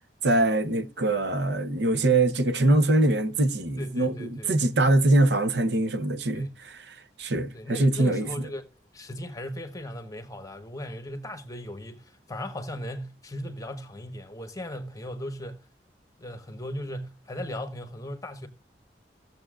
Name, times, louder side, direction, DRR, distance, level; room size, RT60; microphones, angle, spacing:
voice 1, 0.2-8.5, right 2 dB, 75° right, 0.9 m, -23 dB
voice 2, 3.8-4.7 6.3-6.5 7.5-8.7 8.9-15.7 16.2-18.5, left 1 dB, 20° left, 1.3 m, -37 dB
16.0 x 7.4 x 2.4 m
head